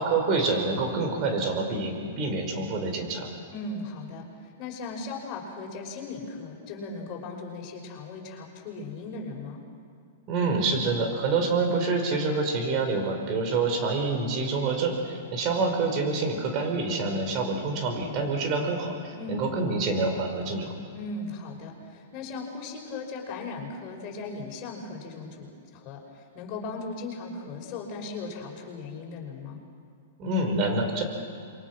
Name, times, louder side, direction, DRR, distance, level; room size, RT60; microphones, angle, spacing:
voice 1, 0.0-3.3 10.3-20.7 30.2-31.0, right 3 dB, 40° right, 4 dB, 5.1 m, -27 dB
voice 2, 3.5-4.2 4.6-9.6 19.2-19.5 20.9-26.0 26.3-29.6, left 3 dB, 40° left, 0 dB, 5.8 m, -37 dB
28.0 x 23.5 x 6.1 m, 2.4 s
hypercardioid pair, 125°, 0 cm